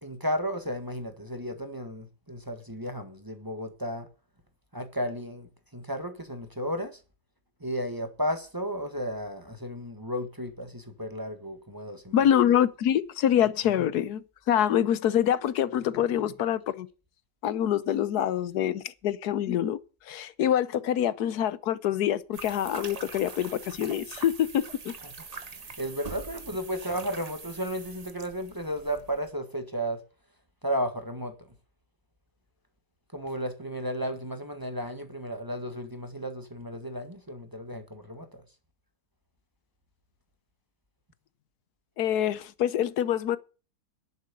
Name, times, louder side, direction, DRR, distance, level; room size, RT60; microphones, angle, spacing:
voice 1, 0.0-4.1 4.7-7.0 7.6-12.2 25.0-30.0 30.6-31.5 33.1-38.4, equal, 10° right, 1.4 m, -34 dB
voice 2, 12.1-16.9 17.4-19.8 20.1-24.9 42.0-43.4, left 10 dB, 60° left, 1.2 m, -25 dB
sound 1, 22.3-29.3, right 4 dB, 35° right, 0.6 m, -43 dB
11.0 x 7.5 x 8.3 m
omnidirectional pair, 2.1 m